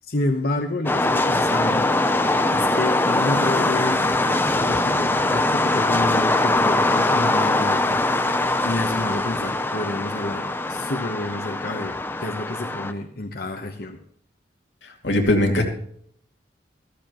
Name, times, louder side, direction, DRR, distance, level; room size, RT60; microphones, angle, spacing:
voice 1, 0.1-1.9 2.5-14.0, left 2 dB, 55° left, 3 dB, 1.0 m, -29 dB
sound 1, 0.9-12.9, left 2 dB, 10° left, 0.6 m, -22 dB
voice 2, 15.0-15.6, left 1 dB, 90° left, 2 dB, 2.4 m, -19 dB
14.5 x 13.5 x 3.0 m, 0.65 s
head